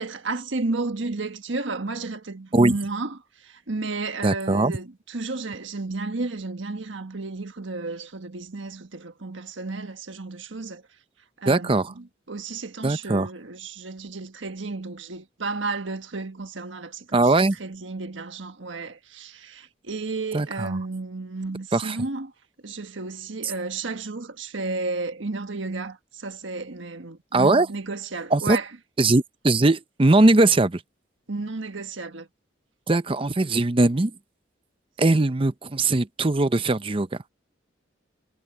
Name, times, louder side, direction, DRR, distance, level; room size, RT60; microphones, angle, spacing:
voice 1, 0.0-10.8 11.4-22.3 22.6-28.7 31.3-32.3, right 3 dB, 90° right, 1.4 m, -32 dB
voice 2, 4.2-4.7 11.5-11.9 12.8-13.3 17.1-17.6 20.3-20.8 21.7-22.0 27.3-27.7 28.3-28.6 29.0-30.8 32.9-34.1 35.0-37.2, right 2 dB, 30° right, 0.7 m, -20 dB
head